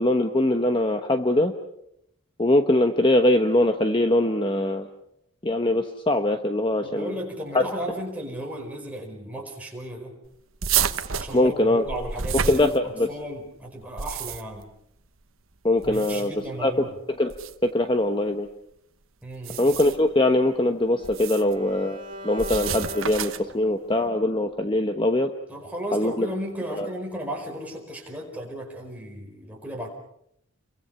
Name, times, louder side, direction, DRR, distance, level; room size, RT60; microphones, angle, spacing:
voice 1, 0.0-1.5 2.4-4.9 5.4-7.1 7.5-7.6 11.3-11.8 12.5-13.1 15.6-16.3 16.6-16.7 17.2-17.3 17.6-18.5 19.6-22.0 22.2-25.3 25.9-26.3 26.8-26.9, left 1 dB, 25° left, 6 dB, 1.1 m, -22 dB
voice 2, 6.8-10.2 11.2-14.7 15.8-17.0 19.2-19.6 25.5-29.9, right 1 dB, 5° right, 0 dB, 4.9 m, -35 dB
sound 1, 10.6-13.2 13.8-14.6 15.8-16.5 17.3-17.5 19.3-20.1 21.0-21.5 22.4-23.6, right 8 dB, 70° right, 1.2 m, -30 dB
Bowed string instrument, 19.8-24.0, left 1 dB, 40° right, 7.1 m, -41 dB
29.5 x 23.5 x 5.7 m, 0.76 s
head